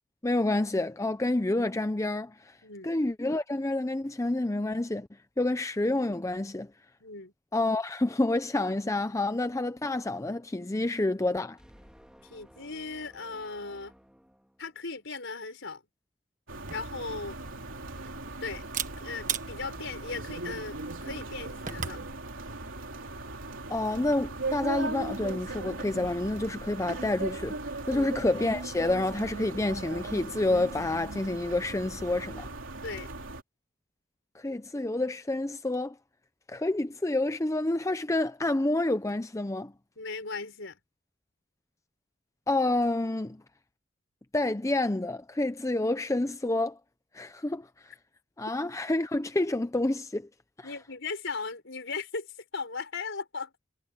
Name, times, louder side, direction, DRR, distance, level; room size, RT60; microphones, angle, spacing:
voice 1, 0.2-2.6 2.8-5.1 5.4-6.7 7.5-11.6 23.7-27.6 27.9-32.5 34.3-36.0 36.5-39.7 42.5-43.4 44.3-46.8 47.1-47.9 48.4-50.3 50.6-50.7, left 2 dB, 15° left, 0.5 m, -28 dB
voice 2, 2.6-2.9 7.0-7.3 12.2-13.9 14.6-15.8 16.7-17.4 18.4-18.6 19.0-22.0 27.9-28.1 32.8-33.1 40.0-40.8 50.6-52.3 52.5-53.5, left 4 dB, 60° left, 5.7 m, -37 dB
sound 1, 11.6-15.0, equal, 5° right, 2.8 m, -56 dB
Camera, 16.5-22.1, right 8 dB, 40° right, 1.4 m, -40 dB
sound 2, 16.5-33.4, right 2 dB, 65° right, 3.6 m, -38 dB
head